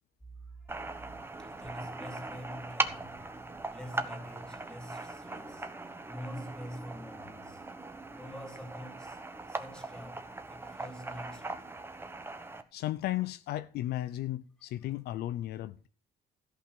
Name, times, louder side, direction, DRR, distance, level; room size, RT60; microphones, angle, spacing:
voice 1, 0.5-3.4 3.7-7.7 8.1-12.0, equal, 5° left, 2.9 m, -46 dB
sound 1, 0.7-12.6, right 2 dB, 15° right, 1.1 m, -40 dB
voice 2, 12.7-15.9, left 14 dB, 75° left, 0.6 m, -35 dB
14.0 x 5.6 x 6.5 m
cardioid pair, 110°, 17 cm